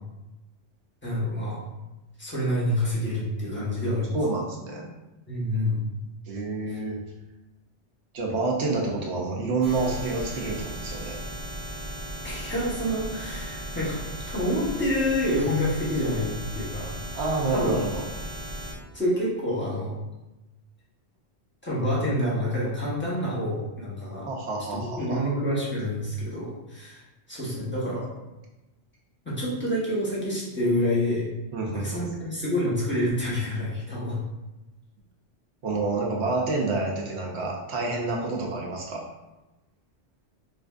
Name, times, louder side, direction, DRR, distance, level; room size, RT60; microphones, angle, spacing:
voice 1, 1.0-1.6 2.2-4.1 5.3-5.8 6.7-6.8 12.2-14.0 14.3-16.9 17.5-17.7 18.9-19.9 21.6-24.3 24.7-27.0 27.3-28.0 29.2-31.3 31.7-34.2 38.3-38.4, left 1 dB, 10° left, -7 dB, 1.0 m, -27 dB
voice 2, 3.5-4.9 6.3-7.0 8.1-11.2 17.1-18.0 24.3-25.3 31.5-32.1 35.6-39.0, right 3 dB, 70° right, -1 dB, 1.0 m, -28 dB
sound 1, 9.6-18.7, right 1 dB, 30° right, 0.7 m, -36 dB
4.2 x 2.5 x 2.4 m, 1.0 s
omnidirectional pair, 1.2 m